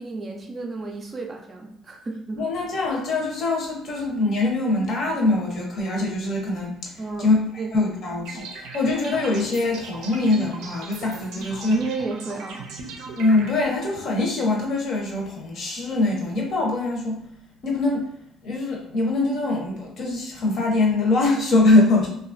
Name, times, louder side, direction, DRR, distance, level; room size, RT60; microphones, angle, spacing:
voice 1, 0.0-2.4 7.0-7.7 11.4-12.7, right 3 dB, 25° right, 1 dB, 0.4 m, -32 dB
voice 2, 2.4-6.9 7.2-7.4 7.7-11.8 13.1-17.2 17.6-18.1 18.4-22.1, left 2 dB, 50° left, -1 dB, 0.8 m, -23 dB
sound 1, 8.2-13.5, right 4 dB, 90° right, 0.5 m, -39 dB
2.8 x 2.4 x 2.5 m, 0.71 s
cardioid pair, 140°, 0 cm